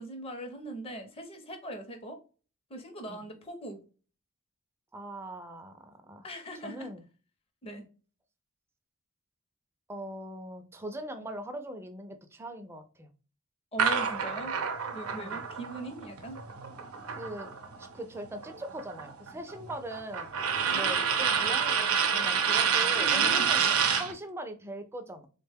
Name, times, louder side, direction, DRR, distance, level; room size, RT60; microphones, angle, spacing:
voice 1, 0.0-2.2 2.7-3.8 6.2-6.9 7.6-7.9 13.7-14.5 14.9-16.4 20.7-21.3 22.9-23.5, right 1 dB, 25° left, 0.6 m, -40 dB
voice 2, 4.9-6.3 6.6-7.0 9.9-13.1 15.1-15.4 17.1-17.5 17.8-20.3 20.7-25.3, right 1 dB, 10° right, 0.4 m, -41 dB
sound 1, 13.8-17.9 18.2-24.1, right 6 dB, 80° right, 0.6 m, -28 dB
3.6 x 2.2 x 3.3 m
head